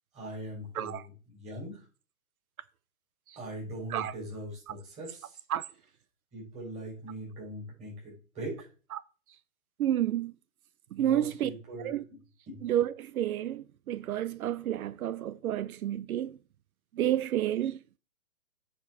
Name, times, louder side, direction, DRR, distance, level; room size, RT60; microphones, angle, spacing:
voice 1, 0.1-1.0 1.3-1.8 3.4-5.4 6.3-8.7 11.0-12.2 12.5-12.6, right 1 dB, 15° right, 5.3 m, -41 dB
voice 2, 0.7-1.1 3.3-3.4 3.9-4.1 4.7-4.8 5.5-5.6 8.9-9.0 9.8-10.3 10.9-11.5 11.8-12.0 12.6-16.4 16.9-17.8, right 11 dB, 80° right, 0.6 m, -30 dB
9.4 x 4.9 x 4.6 m
hypercardioid pair, 155°, 42 cm